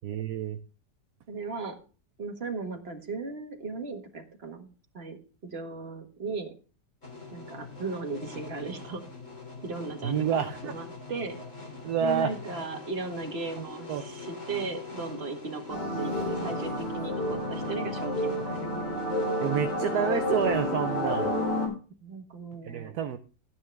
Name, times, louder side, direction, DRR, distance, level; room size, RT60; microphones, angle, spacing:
voice 1, 0.0-0.6 10.0-10.8 11.8-12.3 13.9-14.0 19.4-21.3 22.6-23.2, right 8 dB, 65° right, 8 dB, 1.2 m, -28 dB
voice 2, 1.3-1.8 2.2-4.7 4.9-5.2 5.4-6.5 7.3-9.0 9.6-11.4 12.0-18.7 22.0-23.0, right 4 dB, 35° right, 4 dB, 1.8 m, -37 dB
sound 1, 7.0-21.5, left 4 dB, 45° left, 3.2 m, -43 dB
sound 2, 15.7-21.7, left 1 dB, 75° left, 5.3 m, -30 dB
13.0 x 9.5 x 3.5 m, 0.36 s
omnidirectional pair, 1.9 m